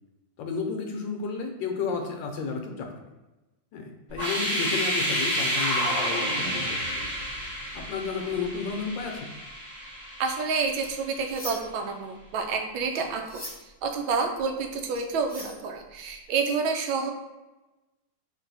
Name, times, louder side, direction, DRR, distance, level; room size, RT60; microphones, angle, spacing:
voice 1, 0.4-2.9 3.7-7.1 7.7-9.3, left 5 dB, 70° left, 3 dB, 1.3 m, -32 dB
sound 1, 4.1-11.0, equal, 25° right, 1.4 m, -30 dB
voice 2, 10.2-13.4 13.8-17.1, right 5 dB, 80° right, 4 dB, 1.3 m, -29 dB
Two chef's knives sliding against each other, 10.7-11.9 12.2-16.2, left 1 dB, 15° left, 0.3 m, -43 dB
3.8 x 2.6 x 4.0 m, 1.1 s
omnidirectional pair, 2.2 m